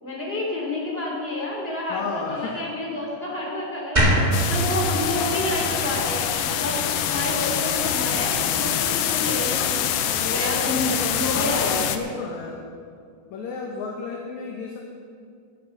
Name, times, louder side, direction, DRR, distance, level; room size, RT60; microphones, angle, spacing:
voice 1, 0.0-9.8 10.1-11.7, left 1 dB, 20° left, -3 dB, 3.2 m, -29 dB
voice 2, 1.8-2.6 11.3-12.7 13.3-14.9, left 4 dB, 65° left, -1 dB, 2.4 m, -32 dB
sound 1, 3.9-7.1, right 1 dB, 25° right, 0.9 m, -24 dB
sound 2, 4.3-12.0, left 10 dB, 85° left, 2.3 m, -25 dB
17.5 x 12.0 x 4.0 m, 2.2 s
omnidirectional pair, 3.7 m